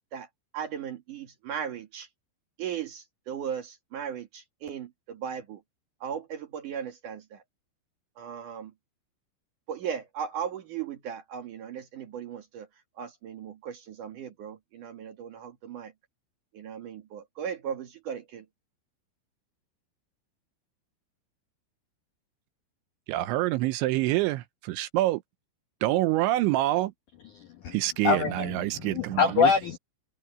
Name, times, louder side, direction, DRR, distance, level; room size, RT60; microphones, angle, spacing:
voice 1, 0.5-2.1 2.6-5.6 6.0-7.4 8.2-8.7 9.7-12.7 13.0-15.9 16.5-18.5, right 8 dB, 55° right, 2.5 m, -37 dB
voice 2, 23.1-25.2 25.8-26.9 27.7-29.5, right 16 dB, 80° right, 2.9 m, -26 dB
voice 3, 27.3-27.7 28.0-29.8, left 6 dB, 75° left, 1.9 m, -25 dB
omnidirectional pair, 5.7 m